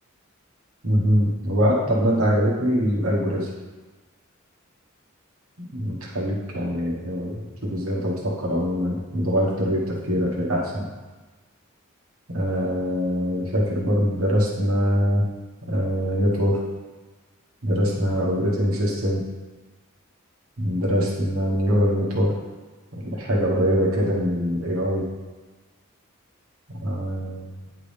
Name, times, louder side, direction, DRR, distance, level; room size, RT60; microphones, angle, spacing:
voice 1, 0.8-3.5 5.6-10.8 12.3-15.2 15.7-16.6 17.6-19.2 20.6-22.3 22.9-25.0 26.8-27.5, equal, 80° right, -4 dB, 1.4 m, -23 dB
9.7 x 3.8 x 3.4 m, 1.3 s
head